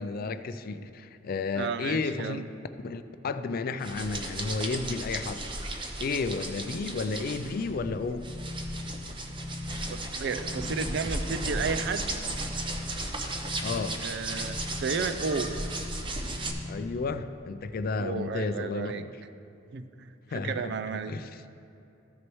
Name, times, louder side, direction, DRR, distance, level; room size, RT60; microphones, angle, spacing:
voice 1, 0.0-2.4 2.8-5.4 6.0-8.3 13.6-14.0 16.6-19.1 20.3-20.6 21.1-21.3, left 4 dB, 50° left, 10 dB, 0.4 m, -32 dB
voice 2, 1.5-2.5 9.9-12.1 14.0-15.5 18.0-19.0 19.7-20.1 20.4-21.1, right 5 dB, 60° right, 11 dB, 0.4 m, -32 dB
sound 1, 3.8-16.5, right 2 dB, 25° right, 0.7 m, -35 dB
sound 2, 7.8-17.0, left 2 dB, 20° left, 0.7 m, -40 dB
14.5 x 6.2 x 3.1 m, 2.7 s
head